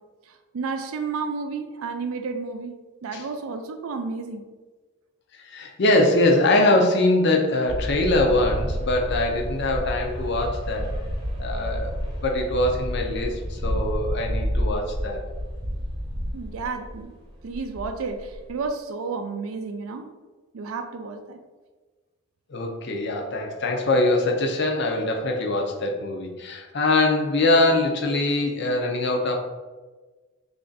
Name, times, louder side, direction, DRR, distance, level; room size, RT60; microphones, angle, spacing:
voice 1, 0.3-2.7 3.0-4.4 16.3-17.1 17.4-20.1 20.5-21.4, right 4 dB, 75° right, 6 dB, 0.4 m, -31 dB
voice 2, 5.4-10.9 11.4-11.9 12.2-15.2 22.5-29.4, left 2 dB, 50° left, 2 dB, 0.5 m, -23 dB
sound 1, 7.7-17.1 17.4-18.7, equal, 20° right, 0.9 m, -30 dB
3.3 x 2.5 x 3.9 m, 1.3 s
head